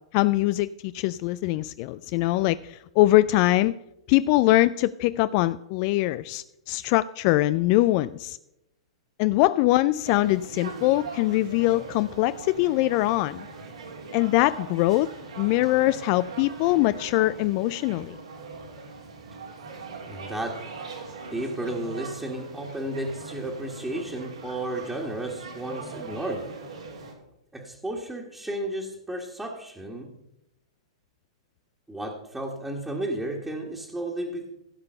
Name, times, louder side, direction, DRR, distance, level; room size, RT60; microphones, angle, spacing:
voice 1, 0.1-3.7 4.1-8.4 9.2-13.4 14.1-15.1 15.4-18.1, left 17 dB, 45° left, 15 dB, 0.3 m, -22 dB
sound 1, 10.0-27.1, right 3 dB, 75° right, 3.2 m, -41 dB
voice 2, 20.1-20.6 21.3-26.5 27.5-30.1 31.9-34.5, right 1 dB, 5° right, -2 dB, 1.8 m, -33 dB
16.0 x 6.8 x 5.4 m, 0.87 s
figure-of-eight pair, 105°, 3 cm